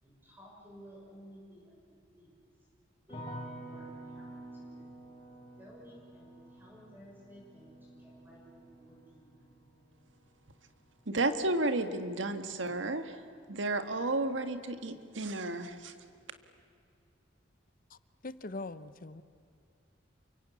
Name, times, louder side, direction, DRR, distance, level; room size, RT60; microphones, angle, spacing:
voice 1, 0.0-1.8 2.2-2.4 3.1-5.0 5.6-9.5, equal, 10° right, -4 dB, 6.7 m, -55 dB
sound 1, 3.1-14.2 14.4-15.2, right 1 dB, 30° left, 7.7 m, -50 dB
voice 2, 11.1-13.2 13.5-15.9, right 2 dB, 85° right, 9 dB, 1.8 m, -32 dB
voice 3, 18.2-19.2, left 2 dB, 50° left, 14 dB, 0.9 m, -41 dB
28.0 x 24.5 x 8.4 m, 2.4 s
head